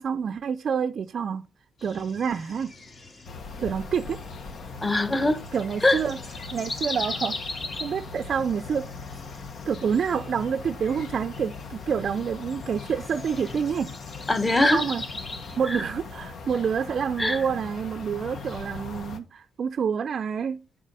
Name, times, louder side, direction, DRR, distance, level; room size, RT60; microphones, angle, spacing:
voice 1, 0.0-1.5 1.8-2.7 3.6-4.2 5.5-6.2 6.5-7.4 7.8-8.9 9.7-13.9 14.7-15.0 15.6-20.6, right 7 dB, 50° right, 0.5 m, -28 dB
sound 1, 1.8-15.6, left 2 dB, 40° left, 2.3 m, -40 dB
sound 2, 3.3-19.2, left 4 dB, 60° left, 1.4 m, -40 dB
voice 2, 4.8-5.4 5.8-6.1 14.3-14.9 15.6-15.9 17.2-17.5, left 2 dB, 15° left, 1.3 m, -22 dB
7.4 x 5.5 x 5.5 m
cardioid pair, 90°, 0 cm